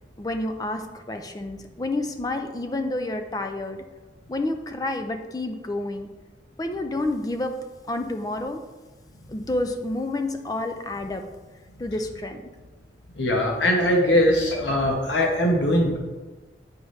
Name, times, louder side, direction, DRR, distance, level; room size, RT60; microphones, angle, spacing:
voice 1, 0.2-3.8 4.3-6.1 6.6-7.6 7.9-8.6 9.3-11.3 11.8-12.4, left 2 dB, 20° left, 6 dB, 0.4 m, -29 dB
voice 2, 13.2-16.0, left 1 dB, 80° left, 1 dB, 1.1 m, -21 dB
8.8 x 4.7 x 3.2 m, 1.2 s
head